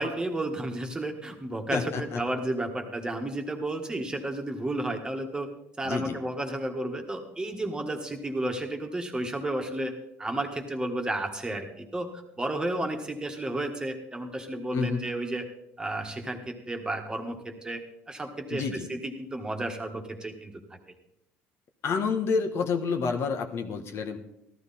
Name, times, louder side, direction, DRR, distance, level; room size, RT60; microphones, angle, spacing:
voice 1, 0.0-5.5 5.8-9.9 10.2-15.5 15.8-17.8 18.1-20.8, right 1 dB, 15° right, 4 dB, 1.6 m, -32 dB
voice 2, 1.7-2.2 5.8-6.2 14.7-15.0 18.5-18.9 21.8-24.2, left 5 dB, 55° left, 5 dB, 1.2 m, -29 dB
14.0 x 12.5 x 4.2 m, 0.83 s
cardioid pair, 105°, 5 cm